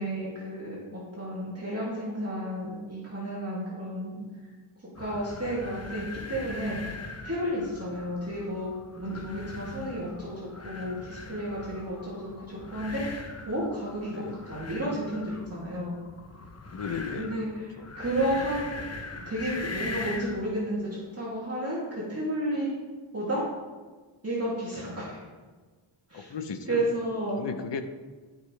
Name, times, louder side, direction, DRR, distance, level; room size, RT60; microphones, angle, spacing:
voice 1, 0.0-4.3 5.0-7.0 7.2-15.9 17.1-18.8 19.3-22.7 23.1-23.4 24.2-25.3 26.1-26.3 26.7-27.4, right 1 dB, 30° right, -7 dB, 2.7 m, -32 dB
sound 1, 4.9-20.4, left 3 dB, 30° left, 0.9 m, -41 dB
voice 2, 16.7-17.4 17.8-17.9 26.1-26.8 27.4-27.8, left 6 dB, 55° left, 8 dB, 1.0 m, -36 dB
14.0 x 5.7 x 3.4 m, 1.4 s
wide cardioid pair, 80°, 50 cm